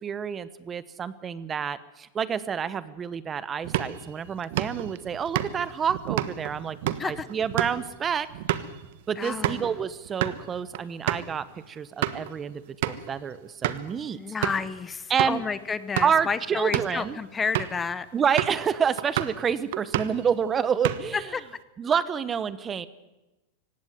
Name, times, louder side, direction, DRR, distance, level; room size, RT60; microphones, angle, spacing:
voice 1, 0.0-6.8 7.0-8.3 9.1-14.2 15.1-15.4 16.0-17.2 18.1-21.3 21.8-22.9, right 7 dB, 25° right, 16 dB, 0.9 m, -28 dB
sound 1, 3.6-9.7 10.1-10.4 10.7-10.8 11.1-11.3 11.8-12.3 12.8-13.1 13.6-13.9 14.4-14.7 15.2-15.4 15.8-16.2 16.6-17.0 17.5-17.8 18.4-18.7 19.0-19.4 19.7-20.3 20.6-21.3, right 13 dB, 70° right, 1.3 m, -30 dB
voice 2, 9.2-9.7 14.1-18.1 21.1-21.4, left 5 dB, 15° left, 15 dB, 0.9 m, -30 dB
18.0 x 16.5 x 9.4 m, 1.0 s
supercardioid pair, 130°, 0 cm